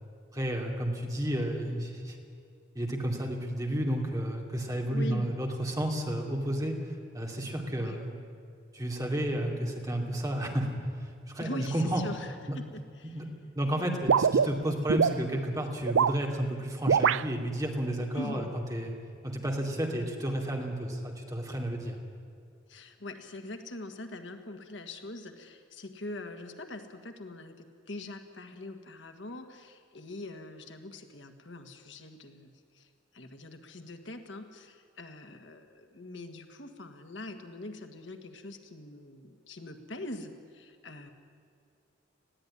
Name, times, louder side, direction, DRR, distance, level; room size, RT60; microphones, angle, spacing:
voice 1, 0.3-2.2 2.7-6.7 7.1-8.2 8.7-10.7 11.0-12.0 12.5-12.6 13.0-13.3 13.6-18.9 19.2-22.0, right 1 dB, 20° right, 0 dB, 2.7 m, -31 dB
voice 2, 4.9-5.3 7.8-8.0 11.4-13.3 18.1-18.5 22.7-32.9 33.1-41.1, left 1 dB, 65° left, 6 dB, 1.6 m, -43 dB
sound 1, 14.1-15.2 15.8-16.2 16.9-17.2, right 6 dB, 85° right, 0.4 m, -23 dB
20.5 x 15.0 x 9.9 m, 2.4 s
head